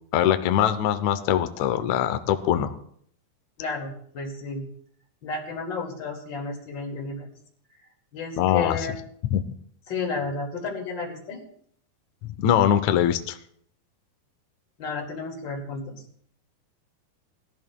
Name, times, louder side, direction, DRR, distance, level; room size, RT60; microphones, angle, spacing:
voice 1, 0.1-2.7 8.4-8.8 9.3-9.4 12.4-13.4, left 10 dB, 85° left, 9 dB, 1.6 m, -22 dB
voice 2, 3.6-4.7 5.2-7.3 8.1-9.0 9.9-11.4 14.8-16.0, left 4 dB, 35° left, 1 dB, 2.4 m, -32 dB
20.5 x 13.0 x 2.3 m, 0.64 s
omnidirectional pair, 4.3 m